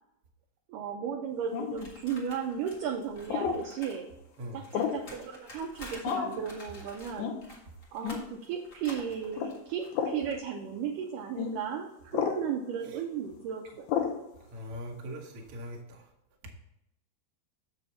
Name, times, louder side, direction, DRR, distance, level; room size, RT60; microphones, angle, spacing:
voice 1, 0.7-4.1 4.5-7.3 7.9-13.9, right 7 dB, 85° right, 3 dB, 1.9 m, -35 dB
sound 1, 1.5-1.9 3.3-3.6 4.7-5.1 6.0-6.4 7.2-7.4 8.0-8.2 9.3-9.5 9.9-10.2 11.4-11.5 12.1-12.4 13.9-14.2, left 7 dB, 90° left, 2.7 m, -30 dB
sound 2, 1.8-4.0 4.3-10.4, left 1 dB, 65° left, 0.7 m, -50 dB
voice 2, 14.5-16.0, equal, 65° right, 0 dB, 1.4 m, -41 dB
7.1 x 6.7 x 4.0 m, 0.83 s
omnidirectional pair, 4.5 m